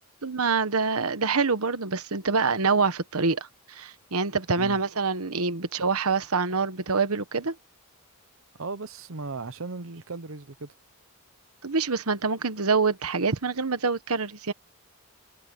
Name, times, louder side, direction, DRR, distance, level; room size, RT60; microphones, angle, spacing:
voice 1, 0.2-7.5 11.6-14.5, right 4 dB, 80° right, 1.3 m, -26 dB
voice 2, 8.6-10.7, right 3 dB, 65° right, 0.9 m, -37 dB
head